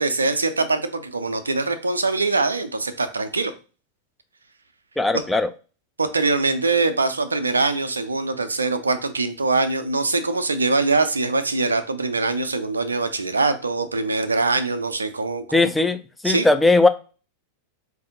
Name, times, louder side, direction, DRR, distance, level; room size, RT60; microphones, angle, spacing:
voice 1, 0.0-3.5 5.1-5.2 6.0-15.7 16.2-16.5, right 3 dB, 75° right, 9 dB, 0.4 m, -23 dB
voice 2, 5.0-5.5 15.5-16.0 16.2-16.9, left 2 dB, 5° left, 7 dB, 0.4 m, -18 dB
4.1 x 2.6 x 3.8 m, 0.35 s
figure-of-eight pair, 90°, 0 cm